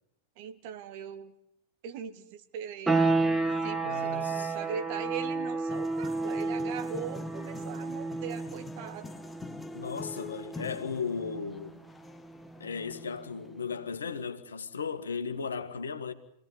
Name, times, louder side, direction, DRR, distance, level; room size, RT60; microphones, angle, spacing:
voice 1, 0.4-1.3 1.8-3.1 3.6-9.1, right 8 dB, 45° right, 2.0 m, -40 dB
sound 1, 2.9-13.4, right 3 dB, 10° right, 1.9 m, -32 dB
voice 2, 3.8-4.6 9.7-11.8 12.6-16.1, left 5 dB, 70° left, 1.8 m, -36 dB
sound 2, 5.7-13.8, left 3 dB, 10° left, 0.9 m, -45 dB
26.0 x 18.0 x 10.0 m
figure-of-eight pair, 90°, 0 cm